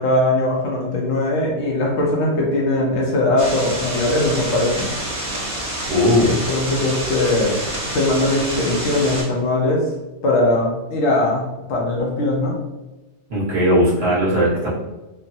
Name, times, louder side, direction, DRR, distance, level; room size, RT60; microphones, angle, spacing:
voice 1, 0.0-4.9 6.2-9.8 10.2-11.4 11.7-12.6, left 1 dB, 75° left, -2 dB, 0.9 m, -20 dB
sound 1, 3.4-9.2, right 1 dB, 30° right, 0.8 m, -28 dB
voice 2, 5.9-6.4 13.3-14.7, equal, 55° right, -8 dB, 1.3 m, -18 dB
3.3 x 2.0 x 2.6 m, 1.1 s
omnidirectional pair, 1.2 m